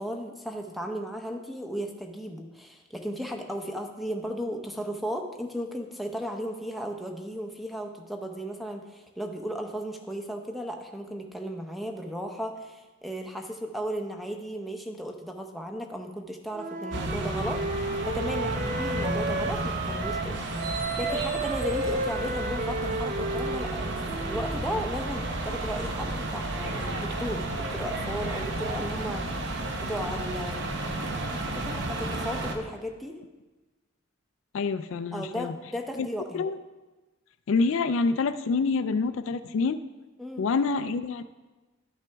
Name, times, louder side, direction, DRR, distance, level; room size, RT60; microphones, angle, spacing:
voice 1, 0.0-20.4 20.7-24.0 24.2-30.7 31.3-33.2 35.1-36.5 40.2-40.4, equal, ahead, 2 dB, 0.7 m, -35 dB
Wind instrument woodwind instrument, 16.5-20.3 20.6-24.6, right 2 dB, 40° right, 0.5 m, -32 dB
sound 1, 16.9-32.5, right 2 dB, 55° right, 0.9 m, -32 dB
voice 2, 34.5-35.5 36.0-36.1 36.3-36.6 37.5-39.8 40.4-41.2, left 4 dB, 70° left, 12 dB, 0.4 m, -26 dB
12.5 x 6.0 x 3.4 m, 1.2 s
head